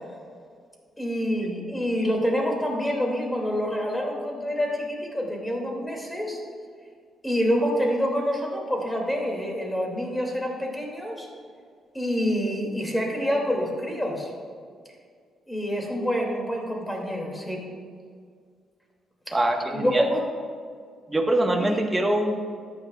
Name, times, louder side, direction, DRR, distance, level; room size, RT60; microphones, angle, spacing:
voice 1, 1.0-6.4 7.2-11.3 11.9-14.3 15.5-17.6 19.7-20.2 21.5-21.8, equal, 10° left, 0 dB, 2.5 m, -27 dB
voice 2, 19.3-20.0 21.1-22.4, right 1 dB, 15° right, 2 dB, 1.3 m, -23 dB
13.5 x 9.6 x 2.4 m, 2.1 s
cardioid pair, 90°, 0 cm